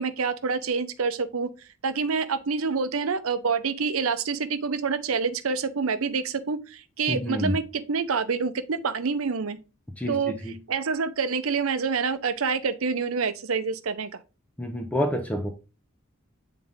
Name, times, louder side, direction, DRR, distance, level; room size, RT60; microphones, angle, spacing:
voice 1, 0.0-1.5 1.8-7.6 7.9-9.6 10.1-10.3 10.7-14.1, right 5 dB, 85° right, 0.7 m, -27 dB
voice 2, 7.1-7.6 10.0-10.6 14.6-15.5, equal, 5° left, 0.7 m, -28 dB
8.8 x 3.8 x 3.6 m
head